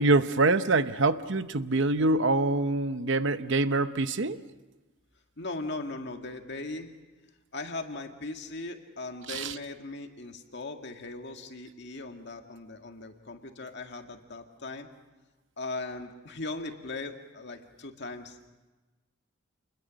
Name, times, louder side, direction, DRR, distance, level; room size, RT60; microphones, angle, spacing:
voice 1, 0.0-4.4 9.3-9.5, right 2 dB, 65° right, 12 dB, 0.8 m, -25 dB
voice 2, 5.4-6.9 7.5-14.9 15.6-18.4, left 2 dB, 60° left, 4 dB, 2.0 m, -39 dB
28.5 x 21.0 x 6.4 m, 1.2 s
head